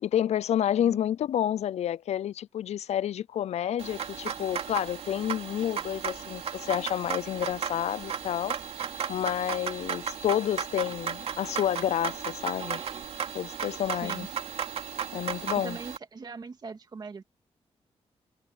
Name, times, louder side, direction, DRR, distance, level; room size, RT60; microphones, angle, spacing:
voice 1, 0.0-8.6 9.1-12.8 13.3-14.3 15.1-15.8, left 10 dB, 75° left, 0.4 m, -29 dB
sound 1, 3.8-16.0, right 7 dB, 60° right, 2.7 m, -35 dB
voice 2, 14.0-14.3 15.3-17.2, right 4 dB, 35° right, 2.0 m, -41 dB
wide cardioid pair, 160°, 11 cm